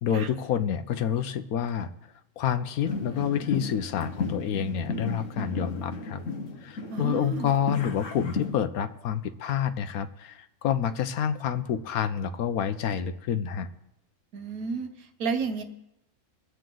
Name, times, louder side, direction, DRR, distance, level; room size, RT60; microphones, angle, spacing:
voice 1, 0.0-1.9 2.4-6.2 6.6-13.7, left 8 dB, 75° left, 11 dB, 1.1 m, -28 dB
sound 1, 2.8-8.5, left 3 dB, 55° left, 1.5 m, -34 dB
voice 2, 6.9-7.5 14.3-15.6, right 5 dB, 70° right, 7 dB, 1.4 m, -31 dB
21.5 x 7.6 x 3.8 m, 0.85 s
omnidirectional pair, 1.6 m